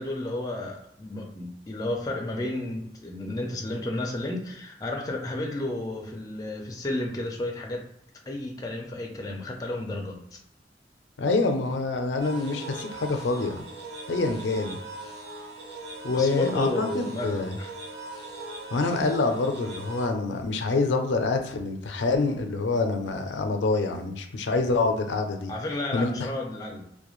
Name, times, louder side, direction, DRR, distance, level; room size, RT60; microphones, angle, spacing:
voice 1, 0.0-7.8 8.3-10.4 16.1-17.7 25.5-26.8, left 1 dB, 20° left, 1 dB, 0.4 m, -32 dB
voice 2, 11.2-13.6 14.1-14.8 16.0-17.5 18.7-25.5 25.9-26.3, left 3 dB, 85° left, 5 dB, 0.4 m, -26 dB
sound 1, 12.2-20.1, right 2 dB, 65° right, 0.6 m, -40 dB
2.3 x 2.1 x 3.0 m, 0.77 s
head